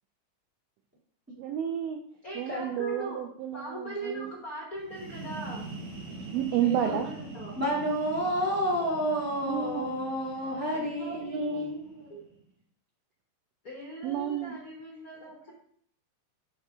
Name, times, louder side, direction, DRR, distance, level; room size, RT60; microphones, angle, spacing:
voice 1, 1.4-2.0 2.3-4.3 6.2-7.1 9.4-10.0 11.2-11.7 14.0-14.5, right 9 dB, 80° right, 3 dB, 1.5 m, -31 dB
voice 2, 2.2-3.2 3.5-5.7 6.8-7.6 10.7-12.2 13.6-15.5, right 1 dB, 65° left, -2 dB, 0.9 m, -40 dB
sound 1, 4.8-12.4, right 3 dB, 60° right, 2.7 m, -43 dB
voice 3, 6.6-7.0 7.6-11.7, equal, 5° right, -7 dB, 1.8 m, -30 dB
5.7 x 5.5 x 3.6 m, 0.64 s
omnidirectional pair, 3.3 m